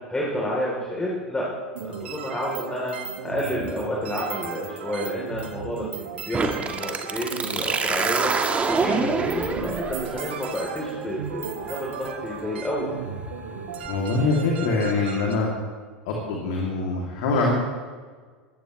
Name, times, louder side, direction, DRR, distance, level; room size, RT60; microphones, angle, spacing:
voice 1, 0.1-1.4 1.8-2.9 3.2-12.9, equal, 10° left, -4 dB, 3.5 m, -30 dB
sound 1, 1.7-15.4, right 7 dB, 70° right, 1.5 m, -36 dB
sound 2, 6.3-13.9, right 4 dB, 20° right, 1.6 m, -28 dB
voice 2, 13.9-15.5 16.0-17.5, left 3 dB, 60° left, -2 dB, 2.8 m, -24 dB
20.5 x 15.0 x 3.2 m, 1.5 s
figure-of-eight pair, 80°, 6 cm